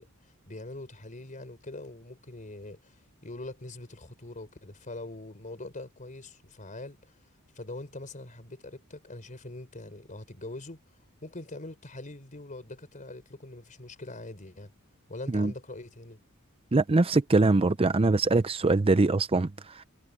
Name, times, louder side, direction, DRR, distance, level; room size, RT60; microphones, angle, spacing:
voice 1, 0.0-7.2 7.5-10.8 11.2-14.7 15.1-16.2, left 2 dB, 35° left, 4.2 m, -43 dB
voice 2, 16.7-19.8, right 3 dB, 25° right, 0.5 m, -23 dB
head